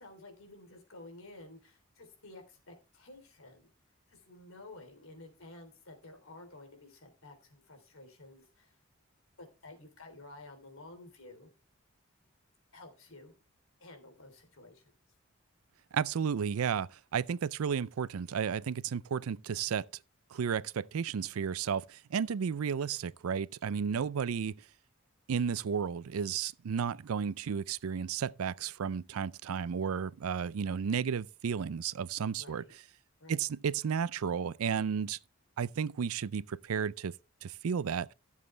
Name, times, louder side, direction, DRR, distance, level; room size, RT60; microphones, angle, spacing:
voice 1, 0.0-3.7 4.1-8.8 9.4-11.5 12.7-13.3 13.8-14.8 32.4-32.7 33.2-33.5, left 2 dB, 75° left, 3.3 m, -52 dB
voice 2, 15.9-19.9 20.3-24.5 25.3-32.6 33.3-35.2 35.6-37.1 37.4-38.1, right 7 dB, 90° right, 0.4 m, -33 dB
15.0 x 7.4 x 3.3 m
head